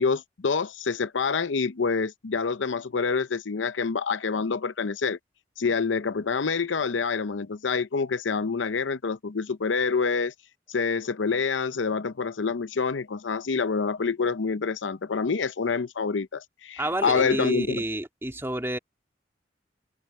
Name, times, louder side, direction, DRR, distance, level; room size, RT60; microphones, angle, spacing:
voice 1, 0.0-5.2 5.6-10.3 10.7-17.8, left 5 dB, 85° left, 0.7 m, -27 dB
voice 2, 16.8-18.8, right 1 dB, 15° right, 2.7 m, -29 dB
head